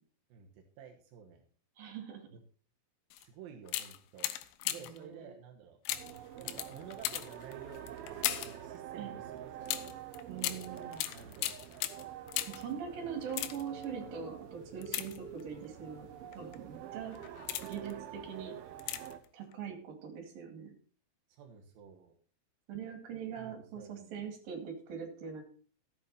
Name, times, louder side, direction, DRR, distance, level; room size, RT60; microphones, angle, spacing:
voice 1, 0.3-1.4 3.2-4.3 4.7-5.8 6.4-9.9 10.4-10.7 11.1-11.8 13.0-13.1 21.3-22.2 23.3-24.2, right 7 dB, 70° right, 1 dB, 2.4 m, -52 dB
voice 2, 1.8-2.2 4.7-5.4 9.0-9.2 10.3-11.0 12.5-16.1 16.3-17.2 17.6-18.5 19.3-20.7 22.7-25.4, right 7 dB, 55° right, 3 dB, 3.7 m, -42 dB
sound 1, 3.1-3.3 3.7-5.0 5.9-8.6 9.7-12.7 13.2-13.9 14.8-15.7 16.3-16.6 17.1-17.9 18.8-19.3 19.5-19.6, left 14 dB, 85° left, 3.3 m, -38 dB
sound 2, 5.9-19.2, right 11 dB, 85° right, 2.1 m, -47 dB
sound 3, 13.2-17.0 17.5-17.6 18.1-18.2, left 9 dB, 30° left, 2.1 m, -57 dB
14.0 x 8.3 x 4.2 m, 0.42 s
omnidirectional pair, 5.6 m